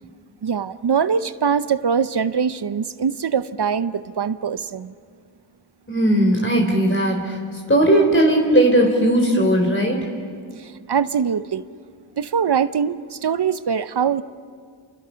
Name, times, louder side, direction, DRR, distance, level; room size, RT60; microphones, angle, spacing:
voice 1, 0.4-4.9 10.6-11.6 12.2-14.2, right 7 dB, 55° right, 14 dB, 0.8 m, -22 dB
voice 2, 5.9-7.4 7.7-10.1, right 1 dB, 25° left, 1 dB, 3.9 m, -17 dB
28.5 x 25.0 x 5.8 m, 2.1 s
cardioid pair, 45°, 49 cm